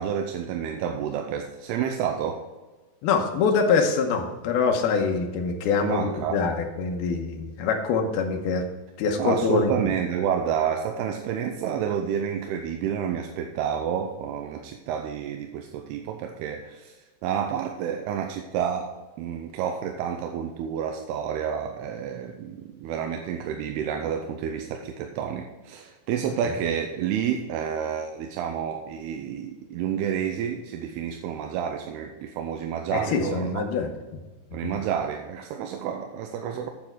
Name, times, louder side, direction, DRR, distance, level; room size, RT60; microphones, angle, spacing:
voice 1, 0.0-2.4 5.8-6.4 9.2-16.9 17.2-18.9 19.2-33.5 34.5-36.7, right 8 dB, 80° right, 4 dB, 2.5 m, -29 dB
voice 2, 3.0-8.6 9.0-9.8 26.4-26.5 32.9-34.2 34.6-34.7, left 5 dB, 75° left, 3 dB, 2.7 m, -24 dB
8.7 x 7.9 x 4.6 m, 1.2 s
omnidirectional pair, 4.9 m